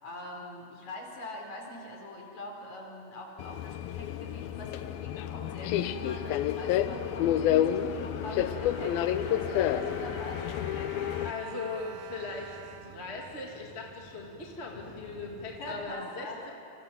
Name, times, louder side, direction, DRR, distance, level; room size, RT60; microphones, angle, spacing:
voice 1, 0.0-11.1 15.6-16.4, left 1 dB, 45° left, 1 dB, 5.5 m, -44 dB
Subway metro underground, 3.4-11.3, left 11 dB, 75° left, 2.4 m, -29 dB
sound 1, 5.2-15.8, equal, 40° right, 6.1 m, -55 dB
Bowed string instrument, 7.7-13.9 14.6-14.7 15.0-15.2, right 12 dB, 80° right, 1.7 m, -48 dB
voice 2, 11.2-12.6 12.8-16.5, left 3 dB, 20° left, -1 dB, 2.3 m, -39 dB
29.5 x 26.5 x 7.4 m, 2.4 s
omnidirectional pair, 4.6 m